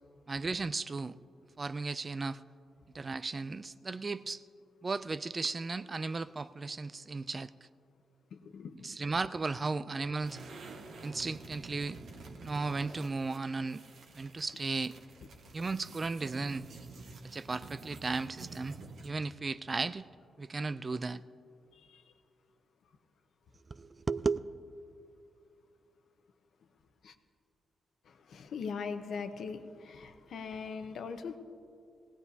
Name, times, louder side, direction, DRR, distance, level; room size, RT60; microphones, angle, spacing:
voice 1, 0.3-1.1 1.6-2.4 2.9-4.4 4.8-7.5 8.8-10.4 11.0-12.0 12.4-13.8 14.1-15.0 15.5-16.7 17.3-18.8 19.0-20.1 20.4-21.2 23.7-24.4, right 3 dB, 25° right, 14 dB, 0.3 m, -35 dB
voice 2, 8.3-9.0 21.7-22.1 27.0-27.1 28.0-31.4, left 5 dB, 75° left, 7 dB, 0.9 m, -41 dB
sound 1, 10.2-19.3, right 3 dB, 75° right, 1.4 m, -49 dB
21.0 x 17.5 x 2.8 m, 2.5 s
wide cardioid pair, 150°, 0 cm